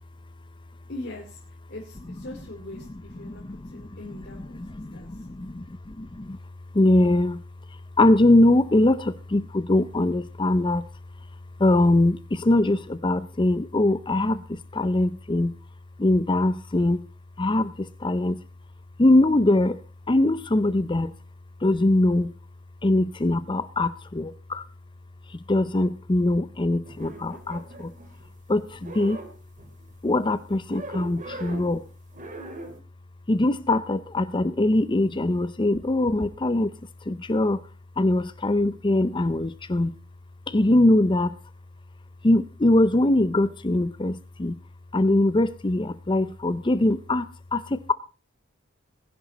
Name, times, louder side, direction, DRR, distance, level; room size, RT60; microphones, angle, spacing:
voice 1, 0.9-1.4 1.7-4.6 4.9-5.3, left 1 dB, 55° left, 2.5 m, -41 dB
voice 2, 2.7-6.4 6.7-7.4 7.7-10.8 11.6-15.5 16.0-17.0 17.4-18.4 19.0-21.1 21.6-22.3 22.8-24.7 25.3-27.9 28.5-29.2 30.0-31.9 33.3-36.7 37.0-37.6 38.0-40.0 40.5-41.4 42.2-44.6 44.9-47.9, left 1 dB, 25° left, 0.6 m, -22 dB
sound 1, 26.8-28.4 28.7-30.0 30.7-31.8 32.1-32.8, right 2 dB, 40° right, 2.8 m, -40 dB
19.5 x 11.0 x 4.1 m
head